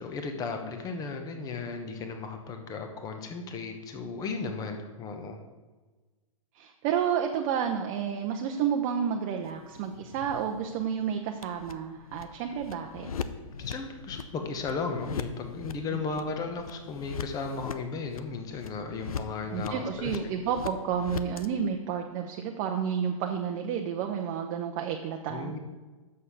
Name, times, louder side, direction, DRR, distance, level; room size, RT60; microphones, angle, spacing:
voice 1, 0.0-5.4 13.6-20.2 25.3-25.6, left 4 dB, 20° left, 5 dB, 1.0 m, -35 dB
voice 2, 6.6-13.1 19.5-25.5, right 8 dB, 35° right, 3 dB, 0.7 m, -30 dB
sound 1, 9.4-21.5, left 6 dB, 85° left, 0.7 m, -41 dB
6.6 x 5.5 x 6.9 m, 1.3 s
hypercardioid pair, 135°, 18 cm